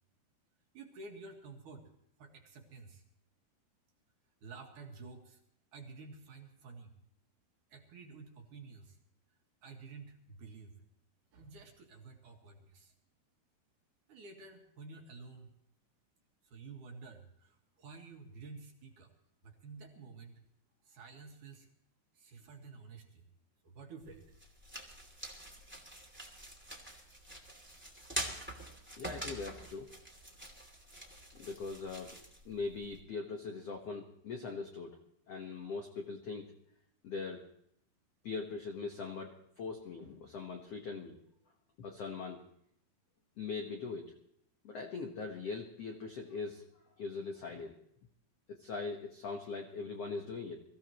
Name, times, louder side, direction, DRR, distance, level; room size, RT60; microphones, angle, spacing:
voice 1, 0.7-1.9 2.2-3.0 4.4-5.4 5.7-6.9 7.7-9.0 9.6-10.7 11.3-12.9 14.1-15.5 16.4-19.1 19.4-20.4 20.8-21.7 22.1-23.2 23.6-24.3, right 4 dB, 55° right, 2 dB, 2.8 m, -51 dB
sound 1, 24.0-33.0, right 1 dB, 5° right, 1.7 m, -45 dB
voice 2, 29.0-29.9 31.3-32.1 32.4-35.0 35.3-36.5 37.0-37.4 38.2-41.2 41.8-42.4 43.4-44.1 44.6-46.7 47.0-47.7 48.5-50.6, left 4 dB, 70° left, 2 dB, 1.5 m, -41 dB
23.5 x 15.0 x 3.0 m, 0.73 s
omnidirectional pair, 4.8 m